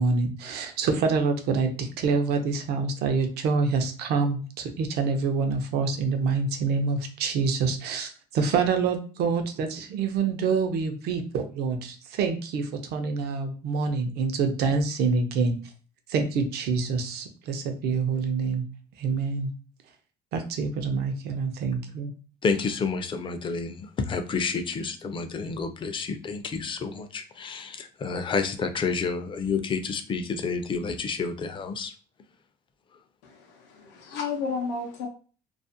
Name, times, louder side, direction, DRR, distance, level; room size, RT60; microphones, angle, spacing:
voice 1, 0.0-15.6 16.1-18.7 19.0-19.5 20.3-22.1, right 4 dB, 75° right, 6 dB, 0.5 m, -26 dB
voice 2, 22.4-31.9, left 5 dB, 30° left, 8 dB, 0.4 m, -29 dB
voice 3, 33.2-35.1, left 4 dB, 85° left, 1 dB, 0.5 m, -32 dB
2.4 x 2.1 x 2.6 m, 0.38 s
cardioid pair, 110°, 17 cm